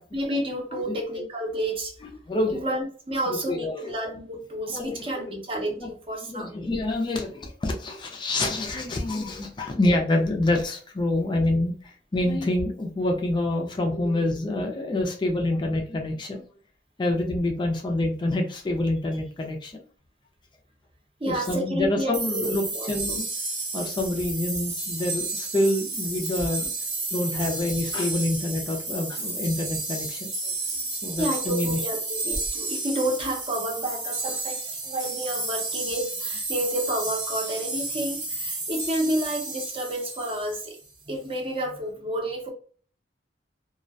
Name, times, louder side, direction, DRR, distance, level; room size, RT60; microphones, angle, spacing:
voice 1, 0.1-1.9 2.5-5.8 6.1-6.6 21.2-23.2 26.4-26.5 30.4-30.5 31.1-40.8 41.1-42.5, right 1 dB, 30° right, 1 dB, 0.6 m, -30 dB
voice 2, 2.3-2.6 3.3-3.9 4.7-5.0 5.3-5.4 5.8-5.9 6.2-16.4 17.0-19.8 21.2-23.3 23.7-26.7 27.1-30.3 31.0-31.8, left 1 dB, 25° left, 2 dB, 0.4 m, -27 dB
sound 1, 22.1-40.8, right 3 dB, 85° right, 1.2 m, -32 dB
2.3 x 2.1 x 2.5 m, 0.43 s
head